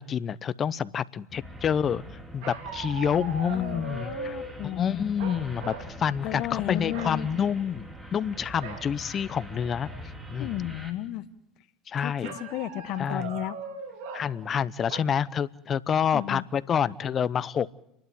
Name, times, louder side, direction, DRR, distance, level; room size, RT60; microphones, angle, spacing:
voice 1, 0.0-2.0 2.3-4.4 4.6-9.9 10.3-10.5 11.9-12.3 13.0-13.3 14.1-17.7, left 8 dB, 40° left, 19 dB, 0.8 m, -28 dB
sound 1, 1.3-10.9, equal, 15° right, 3.6 m, -43 dB
sound 2, 2.4-4.5 5.2-5.9 6.2-6.5 6.9-7.2 8.6-8.9 9.4-9.5 9.8-10.3 12.2-14.3 14.9-15.0, right 5 dB, 70° right, 3.6 m, -39 dB
voice 2, 3.5-5.1 6.2-7.3 10.4-11.2 12.0-12.1 12.4-13.6 16.1-16.4, left 14 dB, 60° left, 14 dB, 1.2 m, -33 dB
29.5 x 12.0 x 9.3 m, 0.82 s
hypercardioid pair, 80°, 0 cm